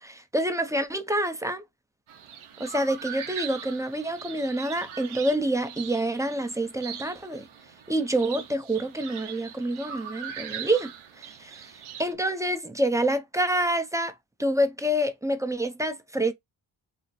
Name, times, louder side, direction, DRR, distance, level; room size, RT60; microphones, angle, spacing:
voice 1, 0.0-1.6 2.6-7.5 7.9-10.9 11.2-11.7 12.0-14.1 14.4-16.3, right 1 dB, 5° right, 0.6 m, -27 dB
sound 1, 2.1-12.1, right 8 dB, 90° right, 0.8 m, -41 dB
3.1 x 2.0 x 4.0 m
cardioid pair, 70°, 48 cm